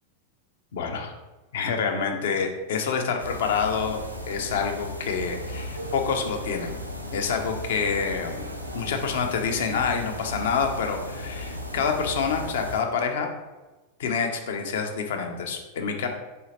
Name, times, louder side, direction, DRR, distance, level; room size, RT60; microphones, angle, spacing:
voice 1, 0.7-1.1 1.5-4.0 4.3-6.7 7.1-8.5 8.7-13.3 14.0-16.1, left 6 dB, 60° left, 4 dB, 0.5 m, -27 dB
sound 1, 3.2-12.8, equal, 90° right, 0.4 m, -36 dB
4.1 x 2.8 x 2.8 m, 1.1 s
figure-of-eight pair, 90°, 0 cm